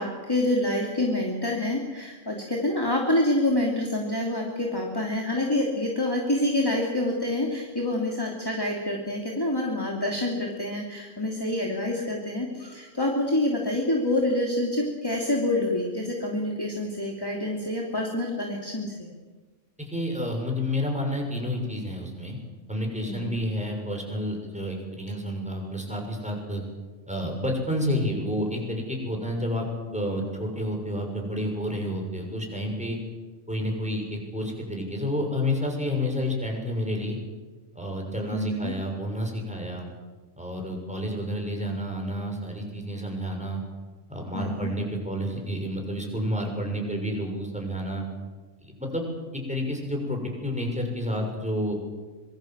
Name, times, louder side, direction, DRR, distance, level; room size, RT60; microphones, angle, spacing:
voice 1, 0.0-19.1 23.0-23.3 38.3-38.7 44.3-44.7, left 1 dB, 20° left, -1 dB, 3.1 m, -27 dB
voice 2, 19.8-22.4 22.7-26.6 27.1-29.7 29.9-33.0 33.5-37.2 37.7-39.9 40.4-43.6 44.1-48.0 48.6-49.0 49.3-51.7, equal, 5° right, 1 dB, 6.4 m, -30 dB
25.5 x 23.5 x 7.5 m, 1.3 s
omnidirectional pair, 1.3 m